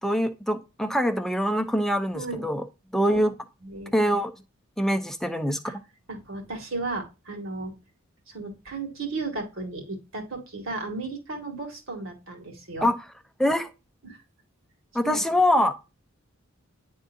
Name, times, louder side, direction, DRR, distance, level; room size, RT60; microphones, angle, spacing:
voice 1, 0.0-2.6 2.9-3.3 3.9-4.3 4.8-5.7 12.8-13.0 13.4-13.7 14.9-15.7, equal, ahead, 0.6 m, -24 dB
voice 2, 2.1-2.4 3.1-3.3 3.6-3.9 5.6-5.8 6.1-7.7 8.3-12.9 14.0-14.2 15.0-15.3, right 3 dB, 65° right, 2.3 m, -34 dB
10.0 x 3.6 x 2.7 m
head